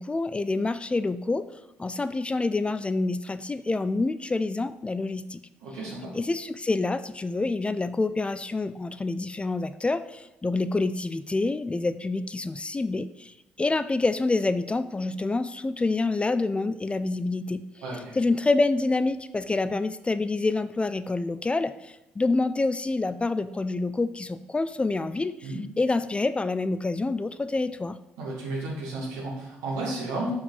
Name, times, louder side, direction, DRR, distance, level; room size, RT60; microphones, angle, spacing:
voice 1, 0.0-1.4 1.8-5.4 6.1-17.6 18.2-28.0, left 3 dB, 20° left, 13 dB, 0.3 m, -27 dB
voice 2, 5.6-6.1 17.8-18.1 25.4-25.6 28.2-30.3, right 2 dB, 80° right, -2 dB, 1.6 m, -33 dB
5.4 x 4.7 x 3.9 m, 0.98 s
hypercardioid pair, 50°, 5 cm